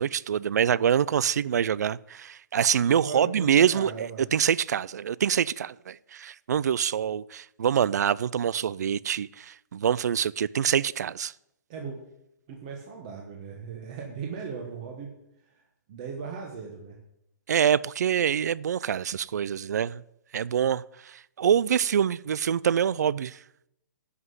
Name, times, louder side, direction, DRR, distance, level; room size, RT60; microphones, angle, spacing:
voice 1, 0.0-11.3 17.5-20.0 20.3-23.4, right 8 dB, 60° right, 0.4 m, -25 dB
voice 2, 2.9-3.5 3.7-4.2 11.7-12.0 12.5-15.1 15.9-17.0, right 5 dB, 25° right, 1.2 m, -37 dB
11.0 x 5.9 x 8.0 m
hypercardioid pair, 180°, 10 cm